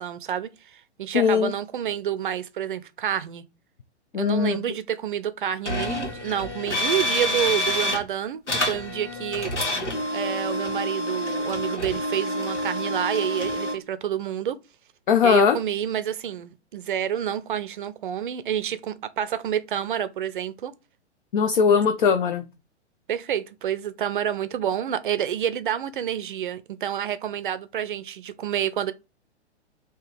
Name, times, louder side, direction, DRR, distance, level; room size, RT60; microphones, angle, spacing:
voice 1, 0.0-3.4 4.2-9.5 10.1-14.6 15.2-20.7 23.1-28.9, right 9 dB, 45° right, 0.5 m, -28 dB
voice 2, 1.1-1.5 4.1-4.6 15.1-15.6 21.3-22.4, left 6 dB, 45° left, 0.6 m, -20 dB
sound 1, 5.7-8.0 8.5-13.7, left 1 dB, 80° left, 1.8 m, -28 dB
3.7 x 2.8 x 4.5 m
figure-of-eight pair, 115°, 35 cm